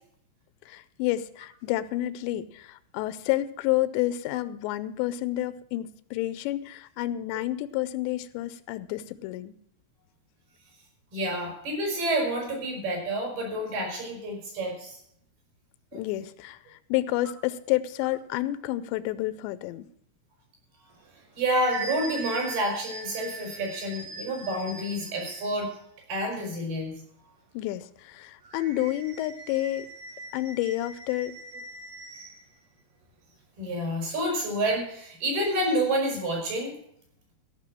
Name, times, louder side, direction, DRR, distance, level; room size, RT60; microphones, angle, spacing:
voice 1, 0.7-9.6 15.9-19.9 27.5-29.9 30.3-31.3, left 15 dB, 90° left, 15 dB, 2.9 m, -30 dB
voice 2, 11.1-15.0 15.9-16.0 21.4-25.7 26.1-26.9 33.6-36.8, right 1 dB, 60° right, 0 dB, 6.2 m, -29 dB
sound 1, 21.0-25.7 28.4-32.4, right 4 dB, 80° right, 1.3 m, -41 dB
14.5 x 6.1 x 7.4 m, 0.69 s
omnidirectional pair, 4.9 m